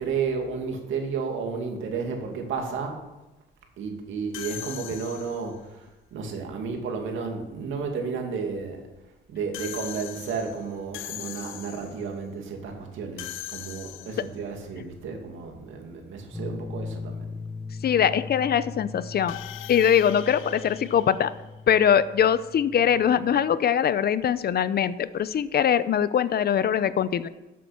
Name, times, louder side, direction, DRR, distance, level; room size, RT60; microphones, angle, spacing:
voice 1, 0.0-3.0 3.8-8.8 9.3-17.2, right 5 dB, 80° right, 3 dB, 2.4 m, -32 dB
sound 1, 4.3-5.6 9.5-12.1 13.2-14.4 19.3-21.8, left 14 dB, 90° left, 0.7 m, -40 dB
sound 2, 16.3-23.6, left 4 dB, 5° left, 0.7 m, -39 dB
voice 2, 17.8-19.3 19.7-21.3 21.7-27.3, left 8 dB, 50° left, 15 dB, 0.7 m, -22 dB
12.5 x 7.6 x 5.9 m, 1.0 s
cardioid pair, 90°, 20 cm